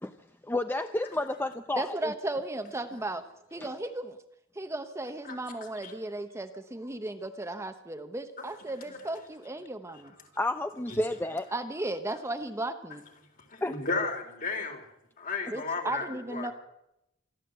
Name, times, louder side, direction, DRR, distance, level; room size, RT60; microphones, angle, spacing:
voice 1, 0.4-2.1 10.4-11.5 13.6-13.7, left 1 dB, 10° left, 9 dB, 0.7 m, -30 dB
voice 2, 1.8-3.2 3.5-4.2 4.5-10.1 11.5-13.1 15.5-16.5, right 2 dB, 15° right, 7 dB, 1.0 m, -35 dB
voice 3, 13.5-14.8 15.2-16.5, left 4 dB, 45° left, 4 dB, 3.9 m, -33 dB
26.0 x 12.5 x 8.1 m, 0.85 s
head